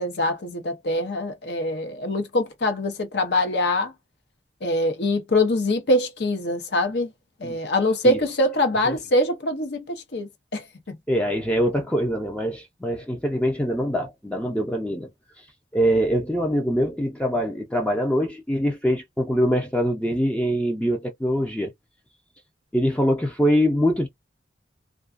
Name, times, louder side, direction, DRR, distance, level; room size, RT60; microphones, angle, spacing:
voice 1, 0.0-3.9 4.6-7.1 7.4-11.0, left 1 dB, 65° left, 0.7 m, -24 dB
voice 2, 11.1-15.1 15.4-15.5 15.7-21.7 22.7-24.1, equal, 5° left, 0.4 m, -23 dB
2.3 x 2.3 x 2.4 m
head